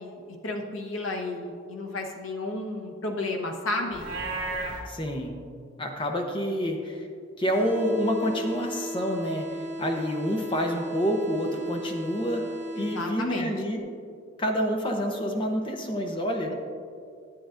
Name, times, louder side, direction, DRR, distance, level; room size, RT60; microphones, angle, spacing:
voice 1, 0.0-4.1 12.8-13.5 16.5-16.6, left 2 dB, 85° left, 2 dB, 1.0 m, -32 dB
Livestock farm animals working animals, 3.9-4.8, right 2 dB, 60° right, 1.7 m, -32 dB
voice 2, 4.9-5.4 5.8-7.1 7.4-12.4 12.7-13.8 14.4-16.5, equal, 25° left, 3 dB, 0.7 m, -28 dB
sound 1, 7.5-13.5, right 1 dB, 40° right, 1.1 m, -36 dB
10.5 x 8.4 x 2.5 m, 2.3 s
head